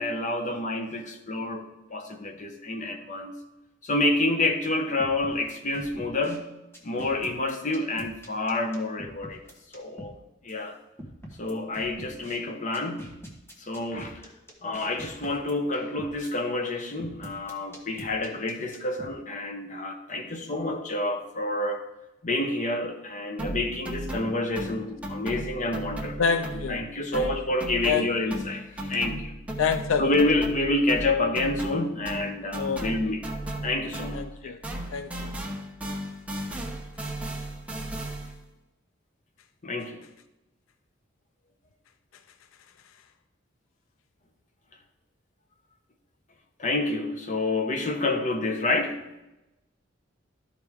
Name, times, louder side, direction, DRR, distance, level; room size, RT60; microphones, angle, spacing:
voice 1, 0.0-3.3 3.8-6.5 6.8-9.4 9.7-10.1 10.4-10.7 11.4-13.1 13.6-14.2 14.6-21.8 22.2-29.3 30.0-33.2 33.6-34.5 39.6-40.0 46.6-49.0, left 2 dB, 40° left, 0.9 m, -28 dB
sound 1, 5.0-6.4 6.7-10.2 10.5-10.6 11.0-12.4 12.7-16.3 17.0-19.1, equal, 10° left, 1.2 m, -44 dB
sound 2, 23.4-26.9 27.1-34.4 34.6-38.4, right 1 dB, 5° right, 0.9 m, -36 dB
voice 2, 26.2-26.8 27.1-27.3 27.8-28.4 29.6-30.1 32.5-32.9 34.1-34.6 34.9-35.3, left 6 dB, 90° left, 0.4 m, -27 dB
12.5 x 4.8 x 3.6 m
head